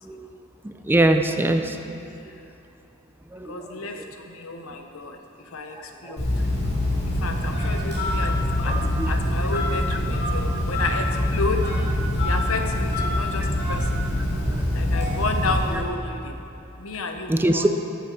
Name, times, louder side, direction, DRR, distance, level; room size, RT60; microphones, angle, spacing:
voice 1, 0.9-2.0 3.4-3.5 6.1-6.2 9.0-9.1 13.7-13.8 17.3-17.7, right 1 dB, 10° right, 6 dB, 0.4 m, -21 dB
voice 2, 3.4-6.4 7.1-11.7 12.2-13.9 14.7-16.3 16.8-17.7, left 3 dB, 75° left, 5 dB, 0.9 m, -31 dB
Telephone, 6.2-15.9, left 1 dB, 50° left, 2.4 m, -24 dB
13.0 x 7.0 x 4.8 m, 2.8 s
head